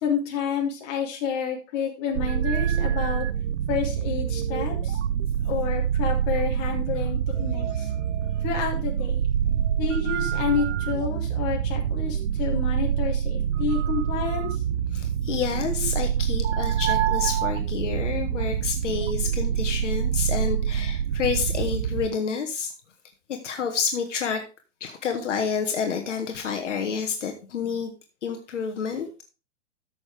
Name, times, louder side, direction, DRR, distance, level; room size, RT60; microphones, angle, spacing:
voice 1, 0.0-3.3 3.7-5.0 5.4-7.9 8.4-9.2 9.8-14.6, left 7 dB, 35° left, -1 dB, 3.3 m, -29 dB
sound 1, 2.2-22.1, right 9 dB, 75° right, 0.7 m, -26 dB
voice 2, 14.9-22.7 23.4-24.4 24.8-27.9 28.2-29.2, left 6 dB, 75° left, 4 dB, 1.7 m, -29 dB
13.5 x 6.6 x 3.5 m, 0.32 s
hypercardioid pair, 155°, 37 cm